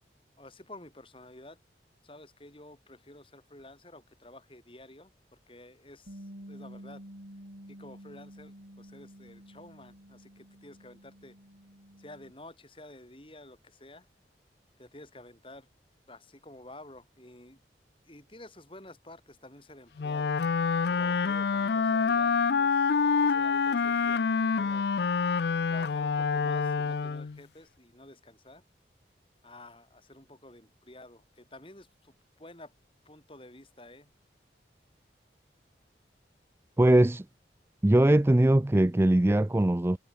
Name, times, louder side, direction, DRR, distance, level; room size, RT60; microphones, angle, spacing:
voice 1, 0.4-1.6 2.0-7.0 7.7-11.4 12.0-14.1 14.8-15.7 16.1-17.6 18.0-20.4 20.9-22.8 23.2-24.9 25.7-28.6 29.4-32.7 33.1-34.1, left 1 dB, 30° left, 5.2 m, -51 dB
Bass guitar, 6.1-12.3, equal, 80° right, 6.1 m, -49 dB
Wind instrument woodwind instrument, 20.0-27.4, left 5 dB, 70° left, 0.5 m, -27 dB
voice 2, 36.8-37.2 37.8-40.0, right 1 dB, 15° right, 0.4 m, -21 dB
head